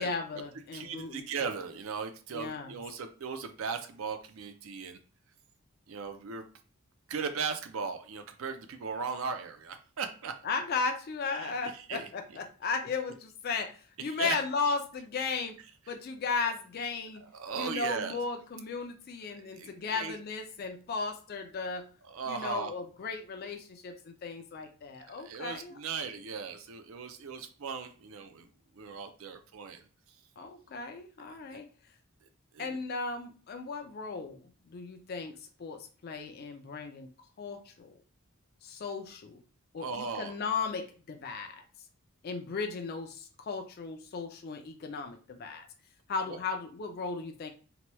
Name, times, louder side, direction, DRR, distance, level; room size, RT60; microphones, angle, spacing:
voice 1, 0.0-1.2 2.3-2.7 10.4-15.6 15.9-17.2 17.5-21.9 22.3-25.8 30.4-31.7 32.6-37.1 37.4-37.9 38.6-39.4 39.7-41.6 42.2-45.7 46.1-47.5, left 4 dB, 45° left, 5 dB, 0.3 m, -36 dB
voice 2, 0.7-5.0 5.9-6.4 7.1-10.3 11.3-12.1 14.1-14.4 17.2-18.2 19.5-20.2 22.1-22.7 25.1-28.5 28.7-29.9 31.5-31.6 32.5-32.8 39.8-40.3 46.3-46.4, right 5 dB, 65° right, 7 dB, 0.4 m, -37 dB
2.9 x 2.2 x 3.0 m, 0.38 s
head